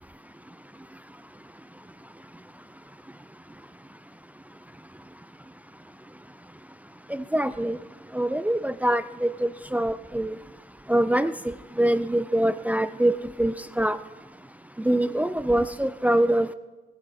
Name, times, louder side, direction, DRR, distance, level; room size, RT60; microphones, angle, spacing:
voice 1, 7.3-7.8 8.1-10.4 10.9-14.0 14.8-16.5, right 1 dB, 5° right, 12 dB, 0.5 m, -24 dB
21.0 x 14.0 x 4.3 m, 1.2 s
cardioid pair, 90°, 20 cm